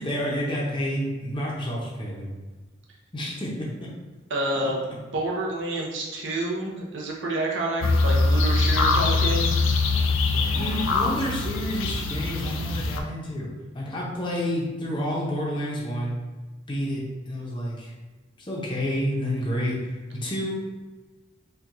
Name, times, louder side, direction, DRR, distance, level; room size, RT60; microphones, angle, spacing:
voice 1, 0.0-2.3 3.1-3.9 10.5-13.5 13.7-16.1 16.7-17.9 18.5-20.5, equal, 25° left, -4 dB, 0.6 m, -29 dB
voice 2, 4.3-4.8 5.1-9.5, right 1 dB, 65° right, -3 dB, 0.7 m, -28 dB
sound 1, 7.8-13.0, left 3 dB, 85° left, 0.4 m, -23 dB
4.4 x 2.2 x 2.5 m, 1.3 s
head